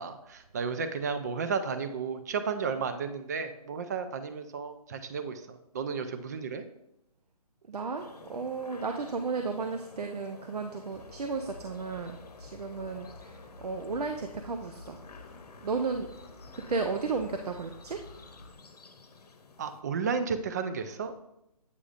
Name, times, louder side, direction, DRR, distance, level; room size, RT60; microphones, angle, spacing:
voice 1, 0.0-6.6 19.6-21.2, right 5 dB, 25° right, 9 dB, 0.4 m, -33 dB
voice 2, 7.7-15.0 15.6-16.1 16.5-18.0, right 4 dB, 80° right, 5 dB, 0.6 m, -34 dB
sound 1, 8.0-19.8, left 4 dB, 80° left, 0.8 m, -52 dB
sound 2, 10.9-18.5, left 2 dB, 25° left, 0.7 m, -51 dB
8.3 x 4.8 x 2.4 m, 0.84 s
hypercardioid pair, 150°, 20 cm